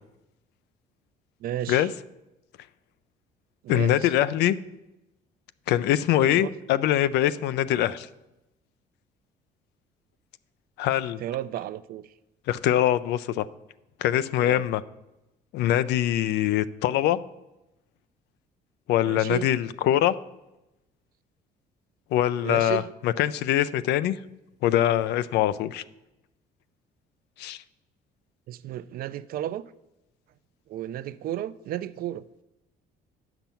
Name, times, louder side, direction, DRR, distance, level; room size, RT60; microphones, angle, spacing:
voice 1, 1.4-1.9 3.6-4.1 6.2-6.5 11.2-12.1 14.4-14.6 19.0-19.5 22.4-22.9 28.5-29.7 30.7-32.2, right 12 dB, 60° right, 16 dB, 0.4 m, -33 dB
voice 2, 3.7-4.6 5.7-8.1 10.8-11.2 12.5-13.5 14.0-14.8 15.5-17.2 18.9-20.2 22.1-24.2 24.6-25.8 27.4-27.6, left 12 dB, 80° left, 15 dB, 0.5 m, -23 dB
9.0 x 5.9 x 7.0 m, 0.94 s
cardioid pair, 110°, 17 cm